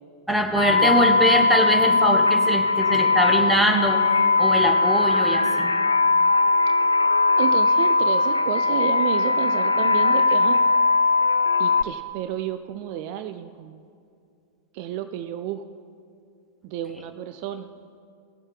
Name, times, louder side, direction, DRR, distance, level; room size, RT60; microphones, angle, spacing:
voice 1, 0.3-5.7, equal, ahead, 3 dB, 1.3 m, -23 dB
sound 1, 0.6-11.8, left 3 dB, 75° left, 0.4 m, -20 dB
voice 2, 7.4-10.6 11.6-13.8 14.7-15.6 16.6-17.7, right 11 dB, 45° right, 10 dB, 0.4 m, -31 dB
19.0 x 7.2 x 4.9 m, 2.4 s
figure-of-eight pair, 90°, 0 cm